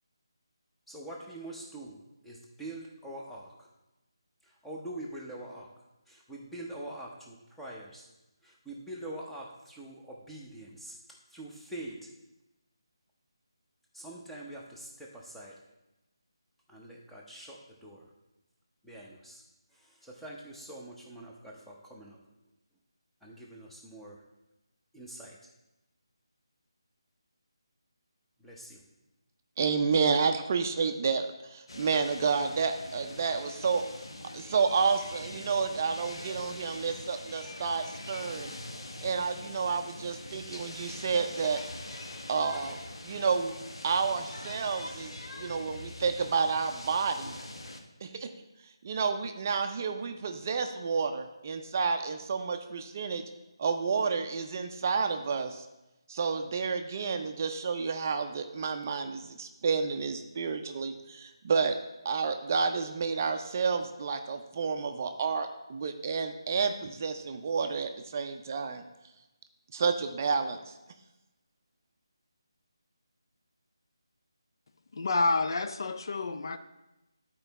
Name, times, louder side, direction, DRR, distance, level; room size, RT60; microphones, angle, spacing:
voice 1, 0.9-2.0 2.2-3.7 4.6-5.7 6.1-8.0 8.4-10.9 11.3-12.1 13.9-15.5 16.7-18.0 18.8-19.4 20.0-22.2 23.2-24.2 24.9-25.4 28.4-28.8, right 1 dB, ahead, -4 dB, 0.7 m, -44 dB
voice 2, 29.6-33.8 34.3-38.5 39.0-41.6 42.3-43.5 43.8-47.4 48.0-48.3 48.8-53.2 53.6-55.7 56.1-61.7 62.0-68.8 69.7-70.7, right 5 dB, 35° right, 6 dB, 0.5 m, -30 dB
sound 1, 31.7-47.8, left 2 dB, 75° left, 1.0 m, -43 dB
voice 3, 74.9-76.6, left 3 dB, 55° left, 9 dB, 0.5 m, -29 dB
11.0 x 4.5 x 4.0 m, 0.97 s
figure-of-eight pair, 165°, 3 cm